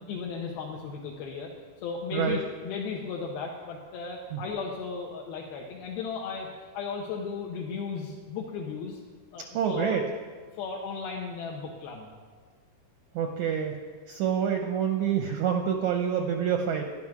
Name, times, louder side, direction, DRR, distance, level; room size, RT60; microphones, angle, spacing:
voice 1, 0.1-1.5 1.8-9.0 9.3-10.0 10.6-12.1, left 5 dB, 90° left, -1 dB, 3.0 m, -35 dB
voice 2, 9.5-10.0 13.2-13.8 14.1-16.8, right 8 dB, 80° right, 4 dB, 1.7 m, -27 dB
13.0 x 10.5 x 6.0 m, 1.5 s
omnidirectional pair, 4.2 m